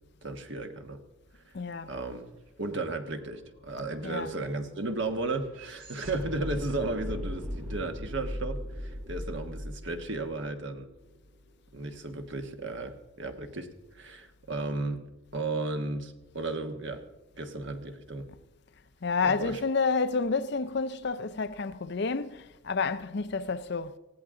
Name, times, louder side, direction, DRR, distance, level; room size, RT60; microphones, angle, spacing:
voice 1, 0.2-1.0 1.3-1.5 1.9-2.3 2.6-10.9 11.7-17.0 17.4-18.3 19.2-19.6, right 2 dB, 55° right, 1.4 m, -34 dB
voice 2, 1.5-1.9 4.0-4.3 19.0-24.0, left 4 dB, 50° left, 0.6 m, -29 dB
sound 1, 2.7-2.8 3.0-11.2, equal, 75° right, 2.6 m, -39 dB
19.5 x 15.5 x 3.8 m
head